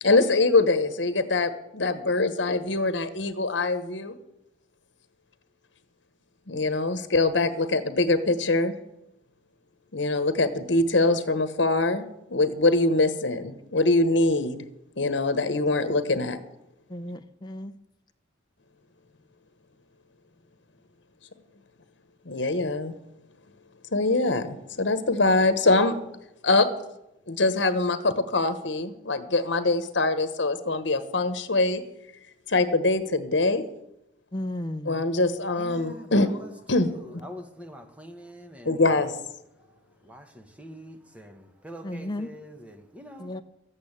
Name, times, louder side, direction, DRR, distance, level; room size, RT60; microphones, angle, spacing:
voice 1, 0.0-4.2 6.5-8.8 9.9-14.6 15.0-16.4 22.2-23.0 23.9-26.0 26.4-26.7 27.3-31.8 32.5-33.7 34.8-36.4 36.7-37.2 38.6-39.1, left 2 dB, 70° left, 1.2 m, -23 dB
voice 2, 16.9-17.7 34.3-35.0 41.8-42.3 43.2-43.4, left 1 dB, 25° left, 0.6 m, -34 dB
voice 3, 35.5-38.8 40.0-43.4, equal, 5° right, 1.3 m, -44 dB
13.5 x 8.7 x 8.7 m
head